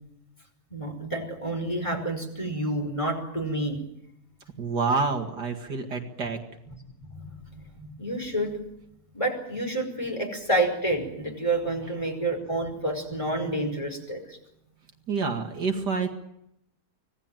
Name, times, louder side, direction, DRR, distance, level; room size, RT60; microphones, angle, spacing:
voice 1, 0.7-3.8 7.1-8.5 9.1-14.4, right 1 dB, 15° left, 3 dB, 5.2 m, -29 dB
voice 2, 4.6-6.4 15.1-16.1, right 4 dB, 70° right, 4 dB, 2.8 m, -27 dB
25.5 x 18.5 x 9.2 m, 0.81 s
omnidirectional pair, 1.9 m